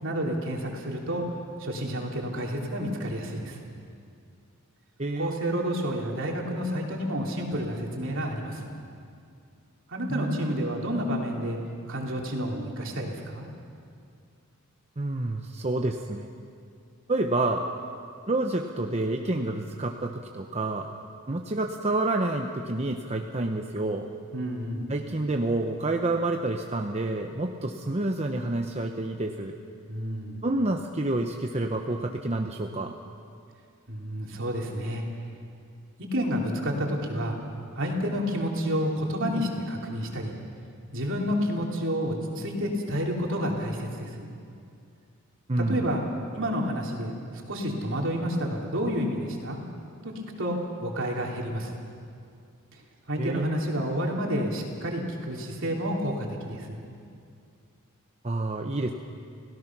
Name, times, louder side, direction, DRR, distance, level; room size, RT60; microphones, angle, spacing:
voice 1, 0.0-1.2 1.6-3.6 5.2-8.7 9.9-11.6 11.9-13.5 24.3-24.9 29.9-30.4 33.9-35.0 36.0-37.4 37.7-40.3 40.9-44.3 45.7-46.0 46.3-49.6 50.0-51.8 53.1-56.8, equal, 60° right, 0 dB, 3.3 m, -30 dB
voice 2, 5.0-5.3 10.1-10.5 15.0-16.3 17.1-17.7 18.3-20.9 21.3-24.1 24.9-29.6 30.4-33.0 45.5-46.0 53.2-53.6 58.2-58.9, right 2 dB, 30° right, 3 dB, 0.8 m, -28 dB
30.0 x 17.0 x 6.1 m, 2.4 s
head